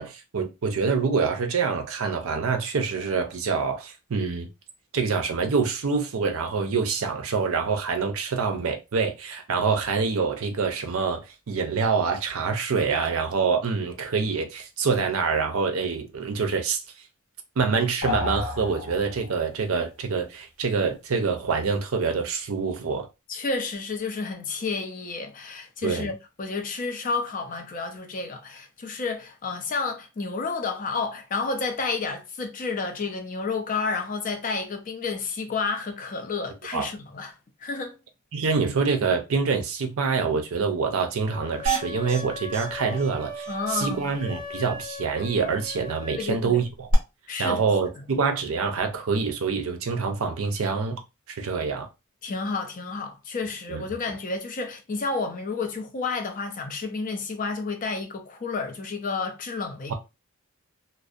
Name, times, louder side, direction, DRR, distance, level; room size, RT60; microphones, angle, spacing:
voice 1, 0.0-4.5 4.9-16.8 17.6-23.1 25.8-26.1 36.7-36.9 38.3-46.9 47.4-51.0 51.3-51.9 53.7-53.8, right 5 dB, 70° right, 0.5 m, -26 dB
sound 1, 18.0-19.5, left 3 dB, 85° left, 1.1 m, -31 dB
voice 2, 23.3-37.3 37.6-38.0 42.9-43.0 43.5-44.1 46.1-46.7 47.3-47.6 48.0-48.1 52.2-59.9, left 4 dB, 35° left, 0.4 m, -30 dB
sound 2, 41.3-46.3, left 2 dB, 20° left, 0.8 m, -39 dB
sound 3, 41.7-42.2 42.5-42.7 43.0-43.1 43.4-43.5 46.9-47.0, right 4 dB, 35° right, 0.8 m, -27 dB
2.6 x 2.0 x 2.4 m
head